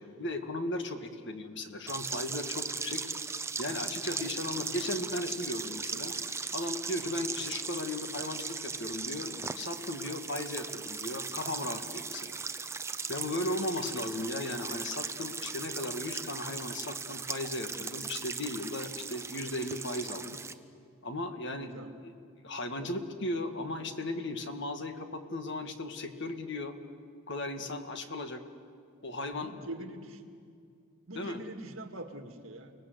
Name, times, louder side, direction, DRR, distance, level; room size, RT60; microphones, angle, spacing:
voice 1, 0.0-3.0 3.6-6.1 6.5-12.4 13.1-20.4 21.0-21.7 22.0-22.1 22.4-26.7 27.3-28.4 29.0-29.5 31.1-31.4, left 1 dB, 55° left, 6 dB, 1.7 m, -36 dB
sound 1, 1.9-20.5, right 4 dB, 10° right, 0.6 m, -38 dB
voice 2, 21.6-21.9 22.8-23.0 29.3-30.3 31.1-32.7, right 1 dB, 65° right, 5 dB, 2.0 m, -43 dB
30.0 x 19.5 x 7.9 m, 2.3 s
head